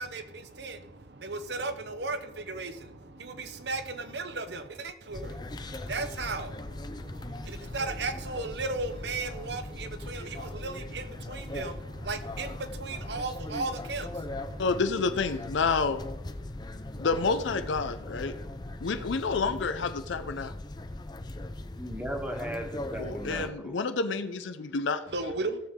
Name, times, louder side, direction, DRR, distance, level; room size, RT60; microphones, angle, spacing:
voice 1, 0.0-14.7 25.1-25.6, right 3 dB, 60° right, 0.8 m, -36 dB
sound 1, 5.1-23.5, left 1 dB, 20° left, 0.5 m, -39 dB
voice 2, 14.6-16.0 17.0-18.3 18.8-20.5 23.0-25.0, left 4 dB, 75° left, 0.6 m, -29 dB
voice 3, 21.6-23.8, equal, 10° right, 1.3 m, -37 dB
16.5 x 7.1 x 3.7 m
head